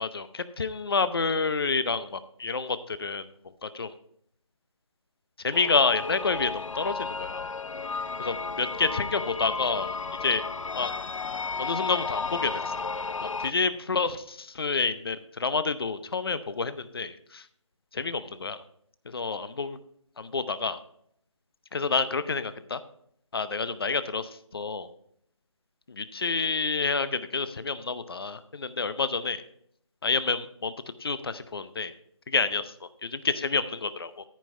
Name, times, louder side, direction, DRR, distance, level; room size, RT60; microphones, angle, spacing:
voice 1, 0.0-3.2 3.6-3.9 5.4-7.5 8.2-10.5 10.7-10.9 11.6-12.7 13.4-17.4 17.9-18.6 19.1-19.8 20.2-20.8 21.7-22.8 23.3-24.9 25.9-29.4 30.0-30.7 31.0-31.9 32.3-34.2, left 4 dB, 50° left, 13 dB, 0.7 m, -29 dB
sound 1, 5.5-13.5, left 4 dB, 85° left, 0.5 m, -33 dB
13.5 x 5.3 x 4.5 m, 0.68 s
figure-of-eight pair, 165°, 16 cm